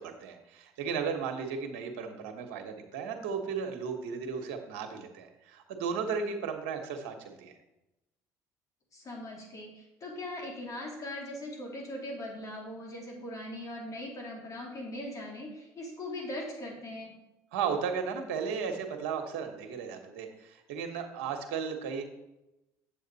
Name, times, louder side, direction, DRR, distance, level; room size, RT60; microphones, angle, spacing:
voice 1, 0.0-7.5 17.5-22.0, right 6 dB, 85° right, 5 dB, 1.2 m, -35 dB
voice 2, 8.9-17.1, left 1 dB, 45° left, -1 dB, 3.3 m, -40 dB
8.4 x 7.5 x 4.1 m, 0.94 s
supercardioid pair, 85°, 8 cm